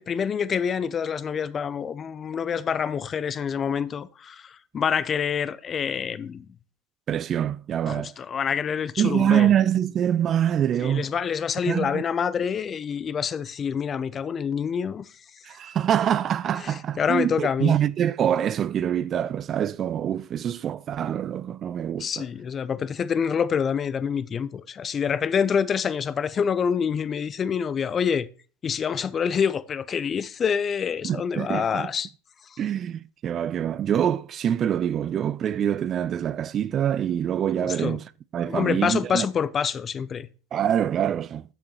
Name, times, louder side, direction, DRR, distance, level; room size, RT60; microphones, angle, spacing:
voice 1, 0.0-6.5 7.9-9.5 10.8-15.0 16.6-17.7 22.0-28.3 28.6-32.1 32.5-32.6 37.6-38.0 38.4-40.3, left 7 dB, 30° left, 0.6 m, -26 dB
voice 2, 7.1-8.1 9.0-11.0 11.7-12.0 15.4-22.2 31.0-31.9 32.6-38.0 38.3-39.3 40.5-41.4, right 9 dB, 35° right, 0.3 m, -25 dB
6.8 x 5.7 x 4.3 m
hypercardioid pair, 95°, 0 cm